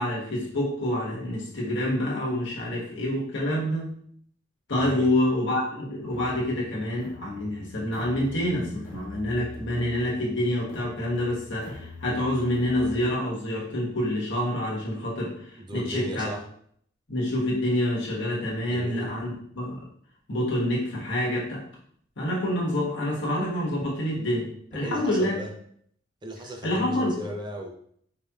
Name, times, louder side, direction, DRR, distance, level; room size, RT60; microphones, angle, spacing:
voice 1, 0.0-3.9 4.7-15.3 15.7-16.3 17.1-19.3 19.5-19.8 20.3-21.6 22.2-24.4 24.7-25.4 26.6-27.2, left 1 dB, 65° left, -4 dB, 1.3 m, -27 dB
voice 2, 4.7-5.1 15.6-16.4 18.6-19.1 24.7-25.5 26.2-27.7, right 1 dB, 25° right, 1 dB, 0.6 m, -36 dB
sound 1, 6.1-13.0, left 1 dB, 45° left, 1.4 m, -43 dB
4.9 x 2.9 x 2.3 m, 0.63 s
head